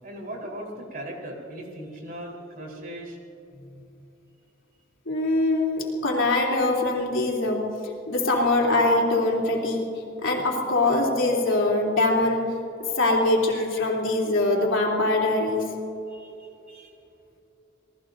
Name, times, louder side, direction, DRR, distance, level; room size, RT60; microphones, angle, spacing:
voice 1, 0.0-3.2 16.1-16.9, right 1 dB, 50° right, 0 dB, 4.1 m, -38 dB
voice 2, 5.1-7.7 8.1-12.5 13.0-15.7, left 2 dB, 80° left, -2 dB, 3.3 m, -23 dB
27.0 x 18.5 x 2.7 m, 2.8 s
head